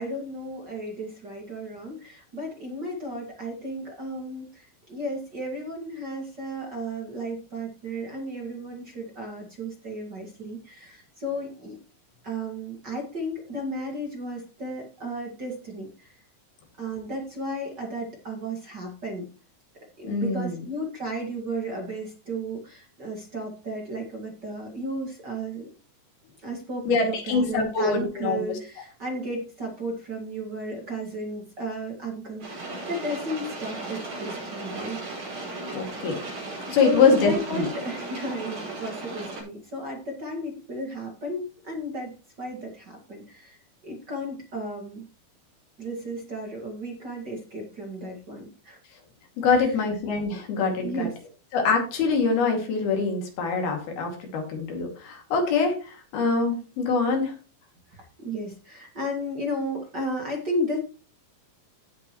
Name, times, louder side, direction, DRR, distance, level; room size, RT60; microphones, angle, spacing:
voice 1, 0.0-11.8 12.2-16.2 16.8-19.3 20.0-25.7 26.4-35.4 36.7-45.1 45.8-48.8 49.5-49.9 50.8-51.2 57.9-60.8, right 1 dB, 35° right, 0 dB, 2.1 m, -34 dB
voice 2, 20.0-20.6 26.9-28.6 35.7-36.2 36.7-37.7 49.4-51.1 51.5-57.3, left 4 dB, 75° left, 2 dB, 4.4 m, -24 dB
sound 1, 32.4-39.4, right 2 dB, 65° right, 7.2 m, -36 dB
16.5 x 7.0 x 3.1 m, 0.34 s
omnidirectional pair, 4.3 m